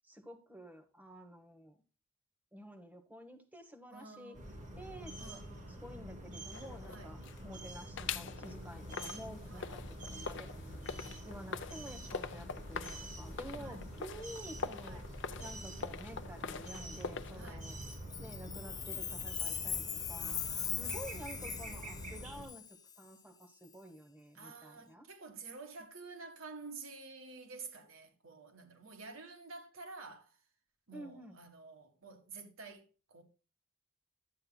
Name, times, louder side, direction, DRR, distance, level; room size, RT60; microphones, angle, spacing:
voice 1, 0.0-1.8 2.5-4.4 4.8-5.4 5.7-10.8 11.2-15.0 15.4-17.8 18.2-22.6 23.0-25.0 30.9-31.4, equal, 10° right, 1.1 m, -50 dB
voice 2, 3.9-4.6 5.2-5.8 6.9-7.1 9.5-9.8 13.6-13.8 14.8-15.1 17.4-17.7 20.2-22.1 24.3-30.4 30.9-33.2, right 4 dB, 75° right, 1.6 m, -51 dB
sound 1, 4.3-22.5, equal, 40° right, 3.2 m, -46 dB
sound 2, 6.5-7.6 8.0-17.5, left 5 dB, 60° left, 0.6 m, -44 dB
Chime, 17.8-22.9, left 8 dB, 20° left, 0.5 m, -40 dB
11.0 x 8.6 x 2.3 m
head